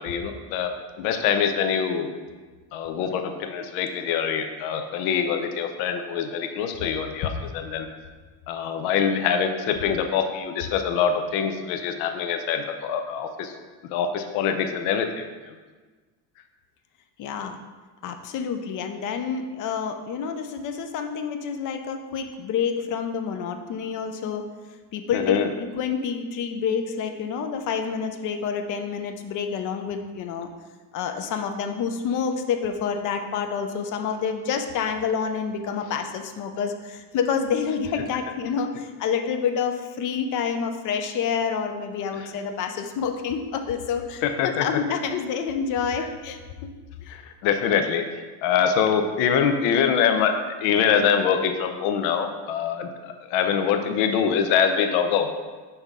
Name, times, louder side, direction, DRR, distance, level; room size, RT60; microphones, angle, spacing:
voice 1, 0.0-2.1 2.7-7.9 8.5-13.5 13.8-15.2 25.1-25.5 42.1-42.3 44.2-44.8 46.0-46.1 47.1-50.3 50.6-55.3, left 7 dB, 75° left, 6 dB, 0.7 m, -24 dB
voice 2, 17.2-17.6 18.0-24.4 24.9-30.5 30.9-46.4, left 6 dB, 40° left, 6 dB, 0.5 m, -28 dB
5.7 x 5.4 x 3.5 m, 1.3 s
cardioid pair, 155°, 47 cm